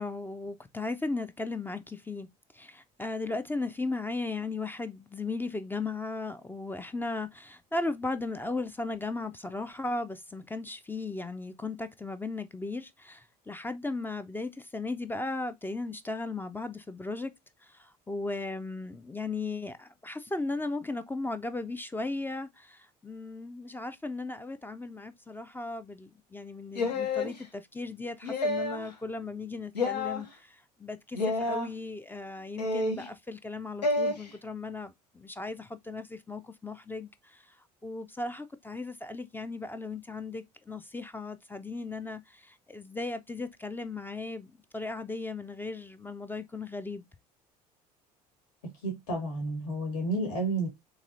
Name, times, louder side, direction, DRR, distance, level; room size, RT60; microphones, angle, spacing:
voice 1, 0.0-2.3 2.5-17.3 17.7-37.4 37.8-47.1, left 3 dB, 10° left, 0.4 m, -36 dB
sound 1, 26.7-27.3 28.2-28.9 29.7-30.2 31.1-31.7 32.6-33.1 33.8-34.1, left 2 dB, 85° left, 0.6 m, -29 dB
voice 2, 48.8-50.7, right 2 dB, 65° left, 1.3 m, -31 dB
4.0 x 2.9 x 2.5 m
figure-of-eight pair, 60°, 20 cm